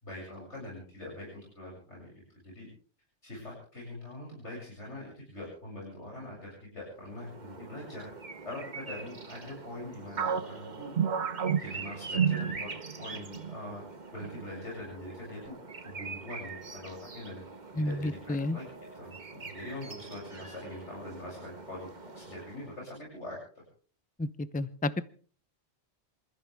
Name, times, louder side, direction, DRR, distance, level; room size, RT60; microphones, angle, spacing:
voice 1, 0.0-2.7 3.2-8.1 8.4-10.9 11.6-12.7 13.0-13.8 14.1-15.6 15.8-17.4 17.7-18.7 19.0-21.9 22.1-23.6, left 1 dB, 85° left, -3 dB, 8.0 m, -43 dB
sound 1, 7.0-22.9, right 3 dB, 40° right, 1.5 m, -45 dB
sound 2, 10.2-13.0 13.3-13.6 14.2-14.7, right 8 dB, 70° right, 1.2 m, -30 dB
voice 2, 17.8-18.6 24.2-25.0, left 1 dB, 10° left, 14 dB, 0.6 m, -31 dB
28.0 x 15.0 x 3.5 m, 0.43 s
omnidirectional pair, 1.2 m